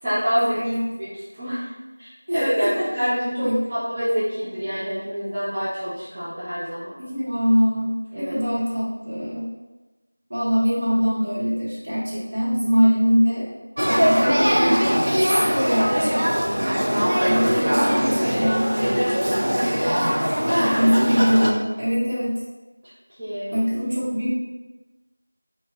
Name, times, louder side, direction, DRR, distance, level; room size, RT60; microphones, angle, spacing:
voice 1, 0.0-0.6 1.0-1.7 2.0-7.0 8.1-8.3 16.6-17.0 19.9-20.8 23.2-23.6, equal, 10° right, -14 dB, 0.3 m, -26 dB
voice 2, 2.3-2.9 3.4-3.6 7.0-7.9 8.2-9.5 10.3-13.5 13.8-16.1 16.9-19.8 20.6-22.3 23.5-24.3, equal, 40° right, -8 dB, 1.2 m, -23 dB
Male speech man speaking / Child speech kid speaking / Conversation, 13.8-21.5, equal, 70° right, 0.5 m, -21 dB
4.8 x 2.2 x 2.7 m, 1.2 s
figure-of-eight pair, 180°, 0 cm